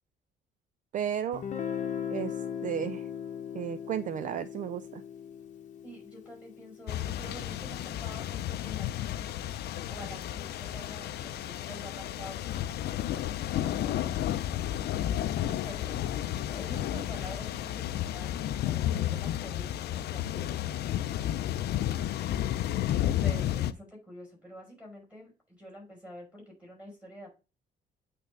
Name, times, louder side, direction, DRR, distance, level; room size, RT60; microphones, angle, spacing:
voice 1, 0.9-1.4 2.1-3.1 3.5-5.0, right 9 dB, 45° right, 13 dB, 0.4 m, -34 dB
Guitar, 1.3-7.1, left 8 dB, 45° left, 0.9 m, -38 dB
voice 2, 5.8-9.3 9.9-13.2 13.6-14.2 15.4-16.1 16.5-20.9 22.9-27.3, equal, 5° right, -2 dB, 5.1 m, -47 dB
sound 1, 6.9-23.7, left 12 dB, 70° left, 0.5 m, -32 dB
8.5 x 3.6 x 5.2 m, 0.32 s
cardioid pair, 155°, 18 cm